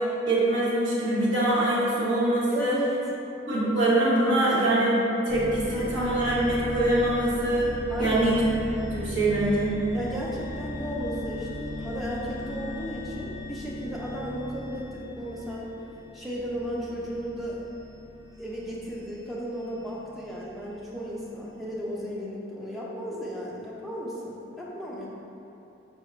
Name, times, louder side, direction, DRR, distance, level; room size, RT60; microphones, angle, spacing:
voice 1, 0.0-2.8 3.5-7.7 8.0-8.4 8.8-9.7, right 1 dB, 60° right, -7 dB, 0.9 m, -24 dB
voice 2, 2.5-3.0 7.9-8.4 9.9-15.7 16.1-17.6 18.4-25.1, equal, ahead, -6 dB, 0.4 m, -34 dB
sound 1, 5.3-21.3, left 1 dB, 15° right, 1.1 m, -38 dB
5.1 x 3.1 x 2.4 m, 3.0 s
head